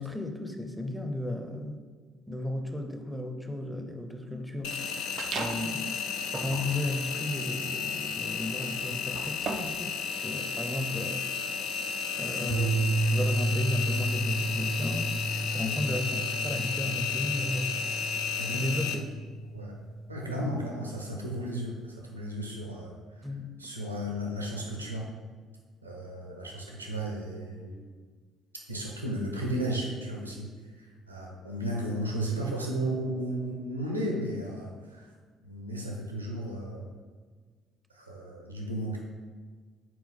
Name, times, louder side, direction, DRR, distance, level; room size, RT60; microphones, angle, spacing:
voice 1, 0.0-1.8 2.3-4.9 5.3-5.9 6.3-11.3 12.2-17.7 18.5-19.0 20.3-20.6 23.2-23.6, left 1 dB, ahead, 5 dB, 0.7 m, -34 dB
Engine, 4.6-18.9, left 6 dB, 60° left, 0.5 m, -33 dB
sound 1, 5.2-5.8 6.3-9.9, right 6 dB, 50° right, 0.4 m, -39 dB
sound 2, 12.5-20.9, right 2 dB, 85° left, 1.5 m, -32 dB
voice 2, 18.4-18.7 19.5-19.8 20.1-23.0 23.6-25.1 25.8-27.8 28.7-35.1 35.4-36.9 37.9-39.0, right 1 dB, 85° right, -1 dB, 0.8 m, -34 dB
6.0 x 4.5 x 3.6 m, 1.5 s
figure-of-eight pair, 50°, 0 cm